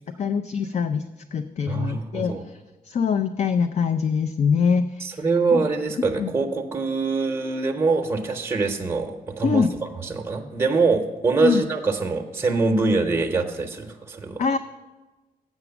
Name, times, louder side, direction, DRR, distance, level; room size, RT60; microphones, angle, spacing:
voice 1, 0.2-1.0 1.3-2.6 2.8-5.2 5.5-5.6 6.2-6.3 9.4-9.7 11.4-11.6 14.4-14.6, left 6 dB, 45° left, 9 dB, 0.4 m, -23 dB
voice 2, 1.7-2.4 5.0-9.6 10.0-14.4, right 3 dB, 15° right, 2 dB, 0.8 m, -24 dB
7.9 x 6.0 x 6.9 m, 1.1 s
cardioid pair, 115°, 16 cm